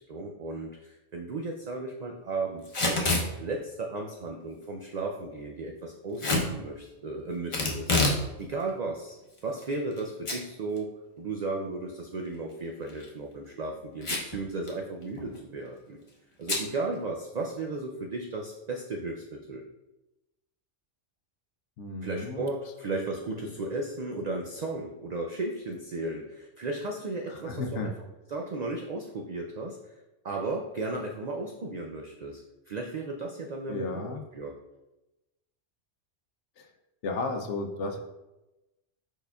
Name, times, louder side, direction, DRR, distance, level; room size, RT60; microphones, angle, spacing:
voice 1, 0.0-8.0 8.4-9.2 9.4-10.9 11.2-16.0 16.4-19.6 22.0-27.9 28.3-29.8 30.2-32.4 32.7-34.0 34.3-34.5, right 2 dB, 70° right, 1 dB, 0.4 m, -35 dB
Packing tape duct tape / Tearing, 2.6-3.3 6.2-6.5 7.5-8.2 8.6-8.7 9.4-10.0 10.3-10.4 10.8-10.9 12.8-13.1 14.0-14.4 14.7-14.8 15.0-15.4 16.5-16.7, left 2 dB, 30° left, 0.7 m, -26 dB
voice 2, 21.8-22.5 23.5-23.6 27.3-27.9 33.7-34.2 36.6-36.7 37.0-38.0, left 3 dB, 75° left, 5 dB, 0.9 m, -33 dB
5.0 x 4.4 x 2.3 m, 1.0 s
omnidirectional pair, 1.2 m